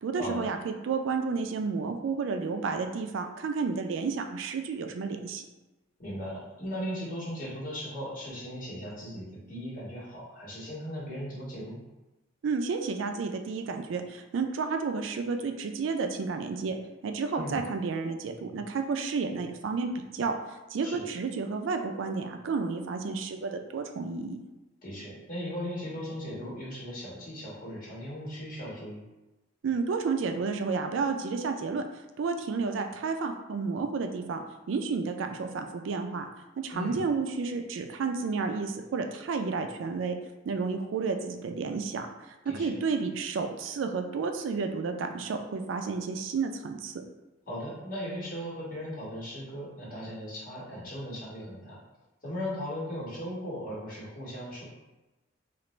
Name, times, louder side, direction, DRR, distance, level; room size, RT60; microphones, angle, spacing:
voice 1, 0.0-5.4 12.4-16.8 17.0-20.3 20.7-24.4 29.6-31.8 32.2-36.3 36.6-40.1 40.5-42.1 42.6-47.0, right 4 dB, 90° right, 6 dB, 0.4 m, -31 dB
voice 2, 6.0-11.8 17.3-17.6 20.8-21.1 24.8-29.0 36.7-37.0 42.4-42.8 47.5-51.8 52.2-54.6, equal, 45° left, -7 dB, 1.3 m, -37 dB
3.2 x 2.4 x 3.0 m, 1.1 s
head